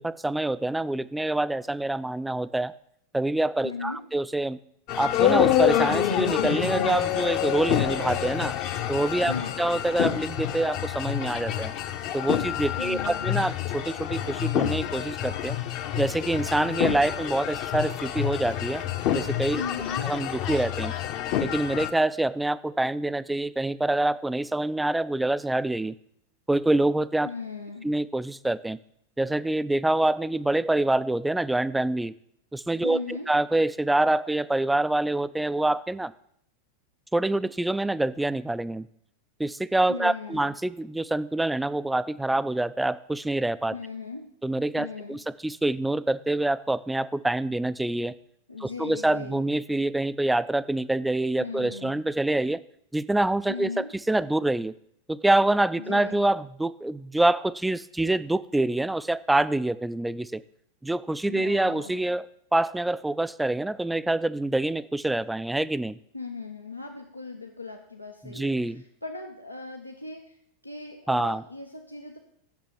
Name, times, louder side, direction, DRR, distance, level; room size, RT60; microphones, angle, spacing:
voice 1, 0.0-2.7 3.1-4.6 5.0-8.6 8.9-11.7 12.1-15.6 16.0-18.8 19.1-19.6 20.0-20.9 21.4-25.9 26.5-27.3 27.8-28.8 29.2-32.1 32.5-36.1 37.1-38.9 39.4-43.8 44.4-48.1 48.6-52.6 52.9-54.7 55.1-60.4 60.8-66.0 68.2-68.8 71.1-71.4, right 2 dB, 5° right, 16 dB, 0.4 m, -26 dB
voice 2, 3.6-4.0 9.3-9.6 12.8-13.4 19.5-20.1 27.2-27.9 32.8-33.3 39.9-40.5 43.7-44.3 44.8-45.2 48.5-49.4 51.4-52.0 53.5-53.9 55.8-56.3 61.3-62.1 66.1-70.4 70.6-72.2, left 4 dB, 90° left, 2 dB, 0.9 m, -38 dB
sound 1, 4.9-21.9, left 11 dB, 40° left, 0.8 m, -27 dB
9.3 x 6.8 x 7.2 m, 0.70 s
figure-of-eight pair, 90°, 0 cm